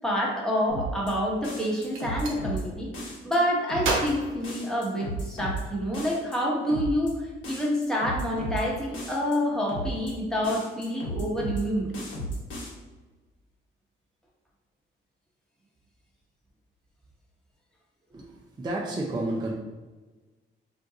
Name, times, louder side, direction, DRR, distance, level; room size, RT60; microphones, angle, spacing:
voice 1, 0.0-11.9, equal, 5° left, -4 dB, 1.0 m, -28 dB
sound 1, 0.7-1.1 1.4-2.6 2.9-3.4 3.7-4.1 4.4-5.6 5.9-6.4 6.7-7.1 7.4-8.6 8.9-9.4 9.7-10.1 10.4-11.6 11.9-12.7, equal, 75° left, 1.0 m, -34 dB
Gunshot gunfire, 1.9-2.4 3.8-5.3, right 3 dB, 80° right, 0.7 m, -32 dB
voice 2, 18.1-19.5, right 1 dB, 20° right, -3 dB, 0.5 m, -31 dB
2.6 x 2.2 x 3.7 m, 1.3 s
cardioid pair, 90°, 20 cm